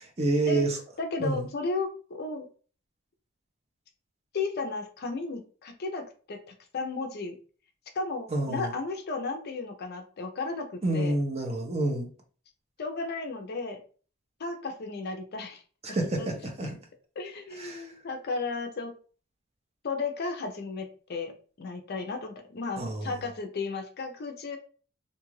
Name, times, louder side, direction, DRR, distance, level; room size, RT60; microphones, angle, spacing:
voice 1, 0.0-0.8 1.2-1.5 8.3-8.7 10.8-12.1 15.8-16.8 17.6-17.9 22.8-23.2, right 2 dB, 30° right, 3 dB, 0.7 m, -28 dB
voice 2, 1.0-2.5 4.3-6.4 6.7-7.4 7.9-11.2 12.8-13.8 14.4-15.6 15.9-16.3 16.6-16.7 17.2-18.9 19.8-24.6, left 3 dB, 50° left, 6 dB, 0.5 m, -34 dB
2.6 x 2.4 x 3.0 m, 0.39 s
head